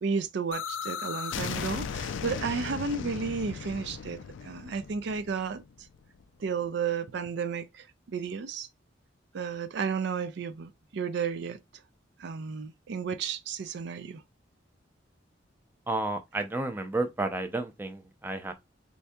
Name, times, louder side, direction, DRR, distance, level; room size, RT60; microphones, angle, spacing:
voice 1, 0.0-5.6 6.4-8.7 9.3-11.6 12.2-14.2, right 5 dB, 65° right, 0.4 m, -33 dB
sound 1, 0.5-6.2, left 6 dB, 80° left, 0.4 m, -37 dB
voice 2, 15.9-18.5, right 2 dB, 10° right, 0.5 m, -31 dB
4.6 x 2.7 x 2.2 m
head